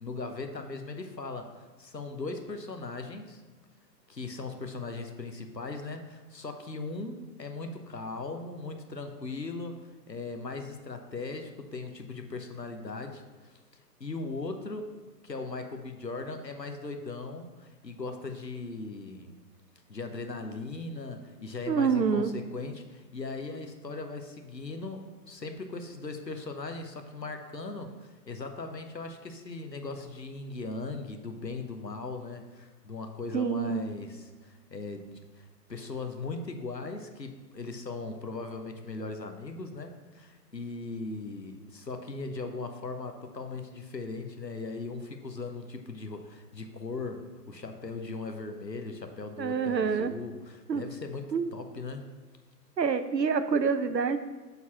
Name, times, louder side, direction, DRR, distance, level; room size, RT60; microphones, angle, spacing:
voice 1, 0.0-3.4 4.1-9.7 10.1-13.6 14.0-14.9 15.2-19.4 19.9-52.0, left 3 dB, 90° left, 5 dB, 1.0 m, -39 dB
voice 2, 21.7-22.3 33.3-33.8 49.4-50.1 50.7-50.8 51.3-51.5 52.8-54.2, right 5 dB, 85° right, 11 dB, 0.7 m, -26 dB
6.5 x 4.1 x 5.8 m, 1.3 s
figure-of-eight pair, 125°, 49 cm